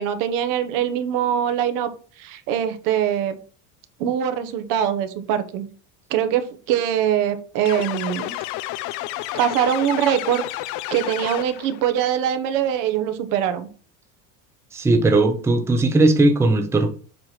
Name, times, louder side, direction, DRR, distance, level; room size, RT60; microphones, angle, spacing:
voice 1, 0.0-1.9 2.2-3.4 4.0-5.7 6.1-8.3 9.3-10.5 10.9-13.7, right 9 dB, 60° right, 1.0 m, -23 dB
sound 1, 7.7-11.8, left 16 dB, 55° left, 0.5 m, -30 dB
voice 2, 14.7-16.9, right 2 dB, 5° right, 0.7 m, -18 dB
7.6 x 3.0 x 5.8 m
cardioid pair, 145°, 37 cm